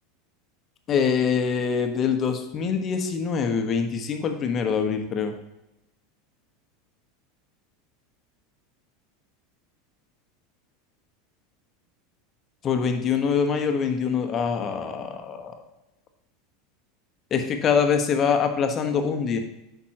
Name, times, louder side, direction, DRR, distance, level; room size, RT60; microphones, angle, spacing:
voice 1, 0.9-5.3 12.6-15.5 17.3-19.4, left 6 dB, 35° left, 6 dB, 1.1 m, -24 dB
8.4 x 6.0 x 2.9 m, 0.95 s
hypercardioid pair, 85°, 0 cm